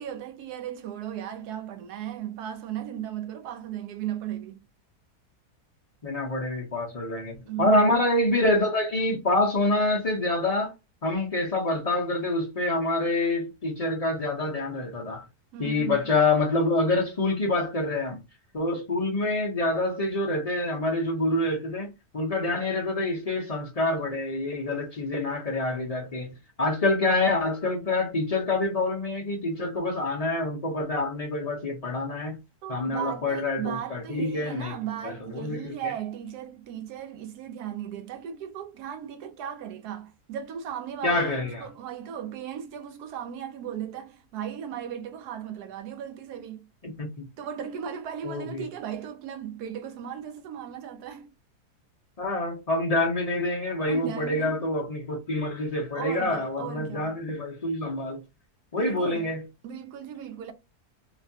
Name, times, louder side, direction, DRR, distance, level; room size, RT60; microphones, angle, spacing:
voice 1, 0.0-4.6 7.5-7.8 15.5-16.1 32.6-46.7 47.4-51.3 53.9-54.6 55.9-57.1 58.8-59.3 59.6-60.5, right 9 dB, 80° right, 1.1 m, -36 dB
voice 2, 6.0-10.7 11.0-15.3 15.6-18.2 18.5-32.4 32.7-34.7 35.0-35.9 41.0-41.6 46.8-47.3 48.2-48.6 52.2-58.2 58.7-59.4, left 2 dB, 65° left, 0.3 m, -26 dB
3.2 x 2.2 x 2.6 m
omnidirectional pair, 1.7 m